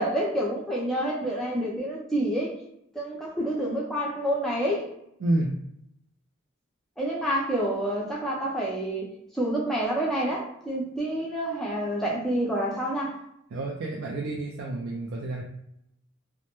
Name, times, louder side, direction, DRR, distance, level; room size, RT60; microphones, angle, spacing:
voice 1, 0.0-2.5 2.9-4.9 7.0-9.1 9.3-13.1, right 1 dB, ahead, -5 dB, 0.4 m, -28 dB
voice 2, 5.2-5.6 13.5-15.4, right 2 dB, 70° right, -2 dB, 0.3 m, -29 dB
2.1 x 2.0 x 2.9 m, 0.77 s
head